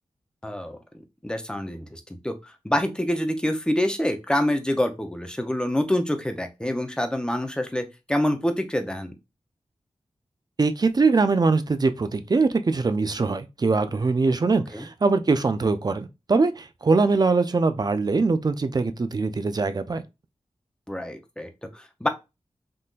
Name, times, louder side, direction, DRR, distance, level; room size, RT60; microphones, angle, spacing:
voice 1, 0.4-0.8 1.2-9.1 14.7-14.9 20.9-22.1, left 1 dB, 10° left, 0.6 m, -26 dB
voice 2, 10.6-20.0, right 4 dB, 35° right, 0.4 m, -22 dB
3.7 x 2.7 x 2.4 m
wide cardioid pair, 60°, 11 cm